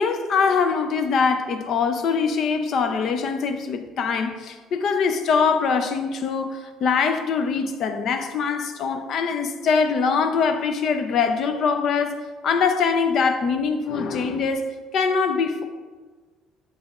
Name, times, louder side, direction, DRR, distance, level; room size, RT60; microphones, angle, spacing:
voice 1, 0.0-15.6, left 5 dB, 45° left, 0.5 m, -23 dB
8.4 x 6.1 x 2.4 m
cardioid pair, 150°, 0 cm